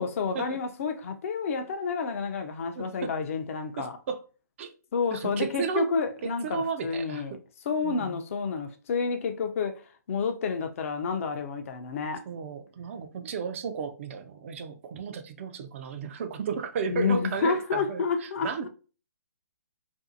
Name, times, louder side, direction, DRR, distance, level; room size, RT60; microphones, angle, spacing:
voice 1, 0.0-4.0 4.9-7.4 7.7-9.8 10.1-12.2 16.9-18.7, left 5 dB, 50° left, 0.4 m, -29 dB
voice 2, 2.8-3.1 3.8-4.2 4.6-4.7 5.1-5.9 6.2-7.4 7.8-8.2 12.3-18.7, right 6 dB, 45° right, 0.4 m, -34 dB
2.6 x 2.4 x 2.5 m
hypercardioid pair, 140°, 10 cm